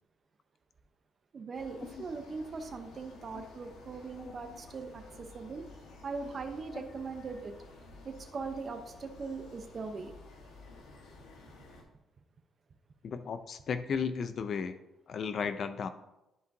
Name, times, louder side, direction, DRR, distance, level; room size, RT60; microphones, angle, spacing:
voice 1, 1.3-5.6 6.0-7.5 8.0-10.1, right 4 dB, 45° right, 5 dB, 0.7 m, -40 dB
sound 1, 1.5-11.8, left 3 dB, 90° left, 1.4 m, -53 dB
voice 2, 4.2-4.6 6.7-6.9 13.0-14.8 15.1-15.9, left 6 dB, 55° left, 10 dB, 0.4 m, -35 dB
10.5 x 5.1 x 2.7 m, 0.94 s
cardioid pair, 90°, 0 cm